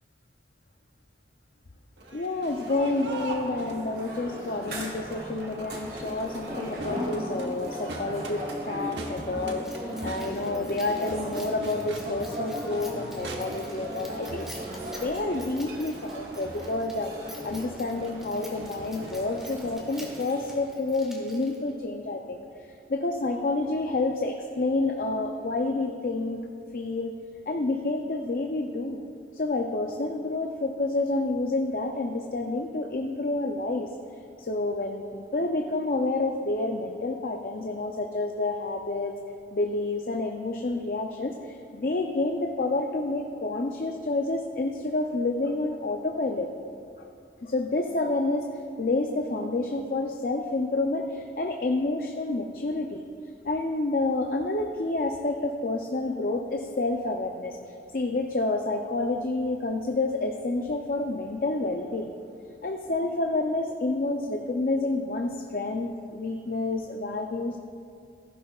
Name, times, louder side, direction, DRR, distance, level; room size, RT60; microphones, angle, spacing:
Crowd, 2.0-19.7, right 1 dB, 90° right, 1.1 m, -43 dB
voice 1, 2.1-9.7 10.0-14.4 14.9-17.2 17.4-22.4 22.9-26.4 26.7-27.1 27.5-29.0 29.3-33.9 34.4-39.1 39.5-46.5 47.0-47.1 47.4-48.5 48.8-53.0 53.4-57.6 57.9-62.1 62.6-67.6, left 2 dB, 50° left, 3 dB, 0.5 m, -29 dB
sound 1, 2.6-20.6, equal, 55° right, 2.2 m, -38 dB
Keys jangling, 9.6-21.8, equal, ahead, 1.5 m, -48 dB
15.0 x 11.0 x 2.4 m, 2.4 s
head